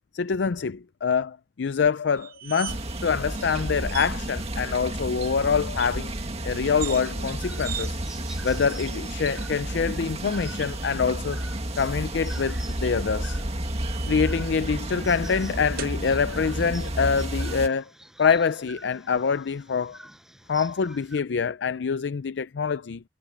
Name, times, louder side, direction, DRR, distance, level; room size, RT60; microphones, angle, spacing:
voice 1, 0.1-6.1 6.4-8.0 8.4-11.4 11.8-13.4 14.1-17.9 18.2-20.0 20.5-23.0, left 5 dB, 80° left, 0.5 m, -25 dB
sound 1, 2.2-3.1 3.4-3.5 3.9-4.2 6.6-7.0 7.6-7.9 8.6-9.2 10.1-10.9 12.8-14.4 15.8-16.0, right 12 dB, 55° right, 0.9 m, -40 dB
sound 2, 2.7-17.7, right 1 dB, 35° right, 2.0 m, -31 dB
sound 3, 7.2-21.2, equal, 5° right, 7.8 m, -48 dB
head